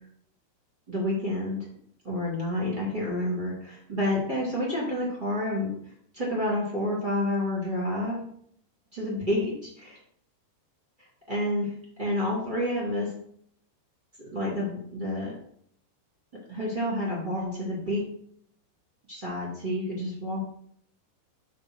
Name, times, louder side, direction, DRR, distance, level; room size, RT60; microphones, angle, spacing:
voice 1, 0.9-1.6 2.0-5.7 6.1-8.3 8.9-10.0 11.3-11.7 12.0-13.1 14.2-15.3 16.5-18.0 19.1-20.4, left 1 dB, 20° right, -6 dB, 1.2 m, -29 dB
8.5 x 3.3 x 6.2 m, 0.65 s
omnidirectional pair, 5.3 m